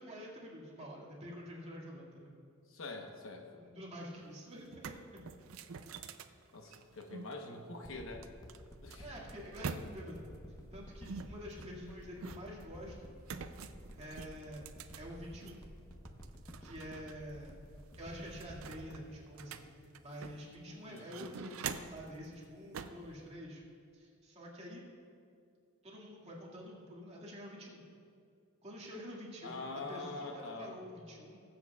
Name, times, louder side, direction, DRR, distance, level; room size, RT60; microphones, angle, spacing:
voice 1, 0.0-2.3 3.5-5.2 9.0-10.2 10.7-13.2 14.0-14.6 14.9-15.7 16.6-17.5 18.0-19.7 20.0-23.6 23.9-24.8 25.8-27.8 28.6-31.4, equal, 30° right, -4 dB, 2.1 m, -48 dB
voice 2, 2.7-3.6 6.5-8.3 8.8-9.1 20.7-21.1 29.4-30.8, left 3 dB, 70° left, 2 dB, 1.0 m, -45 dB
sound 1, 4.2-4.3 4.6-7.3 8.2-10.3 11.0-12.7 13.2-15.6 16.0-17.1 17.4-17.5 17.9-20.6 21.0-22.1 22.7-23.1, right 5 dB, 80° right, 0.5 m, -46 dB
sound 2, 7.8-20.6 21.2-21.3, equal, 20° left, 1.0 m, -52 dB
21.0 x 7.8 x 2.4 m, 2.4 s
head